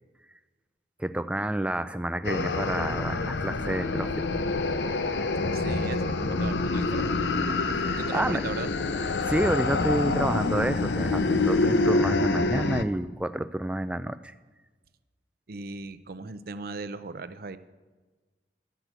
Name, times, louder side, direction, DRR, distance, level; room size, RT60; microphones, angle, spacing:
voice 1, 1.0-4.1 7.8-8.4 9.3-14.3, right 1 dB, 5° right, 11 dB, 0.3 m, -29 dB
sound 1, 2.2-12.8, left 3 dB, 80° left, 0.6 m, -26 dB
voice 2, 5.5-7.2 7.9-8.7 15.5-17.6, right 3 dB, 55° right, 11 dB, 0.6 m, -37 dB
12.0 x 6.0 x 7.9 m, 1.3 s
head